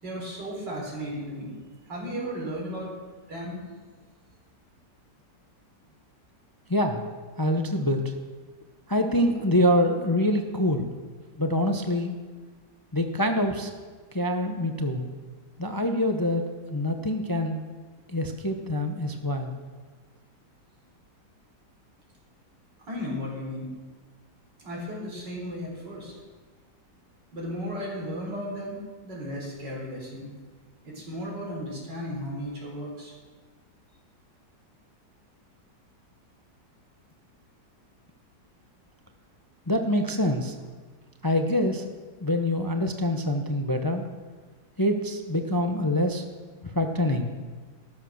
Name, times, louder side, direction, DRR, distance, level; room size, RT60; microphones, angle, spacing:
voice 1, 0.0-1.5 1.8-2.9 3.3-3.6 22.9-23.7 24.6-26.1 27.3-30.3 30.8-33.1, equal, 75° right, -3 dB, 4.7 m, -35 dB
voice 2, 6.7-7.0 7.4-8.0 8.9-10.9 11.4-12.1 12.9-13.7 14.1-15.1 15.6-16.4 16.7-17.6 18.1-19.5 39.7-40.5 41.2-41.8 42.2-44.0 44.8-46.2 46.6-47.3, left 1 dB, 25° left, 5 dB, 0.5 m, -25 dB
13.0 x 10.5 x 6.4 m, 1.4 s
omnidirectional pair, 1.9 m